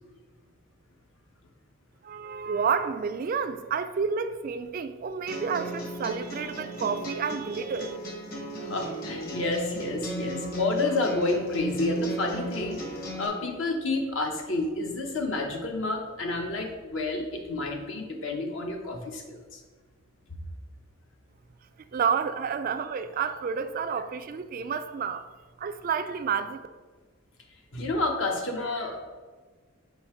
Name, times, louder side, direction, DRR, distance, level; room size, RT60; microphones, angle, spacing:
voice 1, 2.0-8.0 21.9-25.2 25.6-26.6, right 6 dB, 40° right, 0.3 m, -30 dB
sound 1, 5.3-13.3, right 1 dB, 45° left, 1.2 m, -36 dB
voice 2, 8.6-12.8 13.2-19.6 20.3-20.4 27.7-29.1, left 2 dB, 65° left, 1.0 m, -30 dB
5.6 x 4.5 x 4.4 m
head